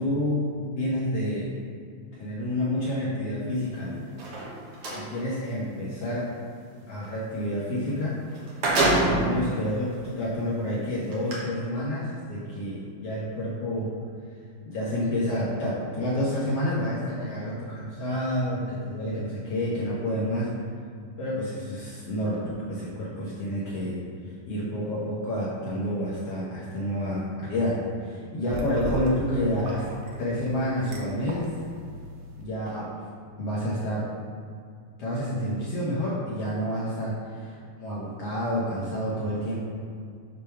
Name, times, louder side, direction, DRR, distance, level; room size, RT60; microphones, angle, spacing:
voice 1, 0.0-1.5 2.1-4.1 4.9-6.3 6.9-8.2 9.1-13.9 14.7-20.5 21.2-24.0 24.5-29.8 30.2-31.5 32.4-32.9 33.4-34.1 35.0-39.6, equal, 75° left, -7 dB, 1.3 m, -29 dB
sound 1, 4.1-5.0 7.9-8.0 8.3-9.4 10.1-10.2 11.1-11.3, right 2 dB, 65° right, 1.4 m, -24 dB
sound 2, 28.4-32.4, right 1 dB, 85° right, 1.6 m, -37 dB
6.7 x 3.4 x 5.8 m, 2.3 s
omnidirectional pair, 4.3 m